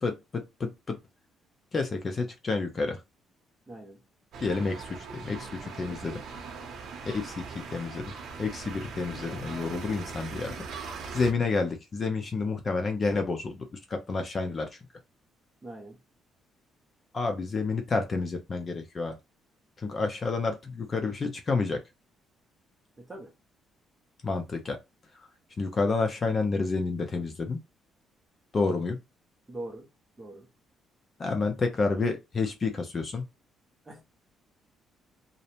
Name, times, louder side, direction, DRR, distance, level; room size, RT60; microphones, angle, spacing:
voice 1, 0.0-1.0 1.7-3.0 4.4-6.2 7.0-8.1 8.4-10.6 11.1-14.7 17.1-19.2 19.8-21.8 24.2-24.8 25.6-27.6 28.5-29.0 31.2-33.2, left 4 dB, 35° left, 0.5 m, -29 dB
voice 2, 3.7-4.0 15.6-16.0 23.0-23.3 29.5-29.9 30.2-30.5 33.9-34.0, right 1 dB, 15° right, 0.6 m, -42 dB
sound 1, 4.3-11.3, right 5 dB, 65° right, 0.7 m, -40 dB
2.5 x 2.0 x 2.8 m
cardioid pair, 120°, 0 cm